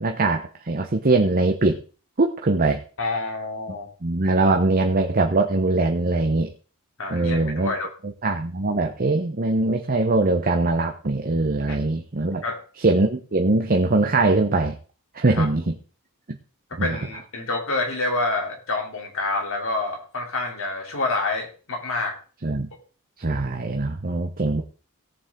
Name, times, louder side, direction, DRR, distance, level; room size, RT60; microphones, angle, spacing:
voice 1, 0.0-1.8 2.2-2.8 4.0-6.5 7.1-7.7 8.2-12.4 12.8-14.8 15.1-15.7 16.3-16.4 16.8-17.0 22.4-22.7 23.2-24.6, right 2 dB, 40° right, 4 dB, 0.9 m, -22 dB
voice 2, 3.0-3.9 7.0-7.9 11.7-11.8 12.4-12.6 15.3-15.5 16.7-22.1, left 3 dB, 65° left, 1 dB, 3.3 m, -27 dB
17.0 x 7.2 x 3.8 m, 0.38 s
head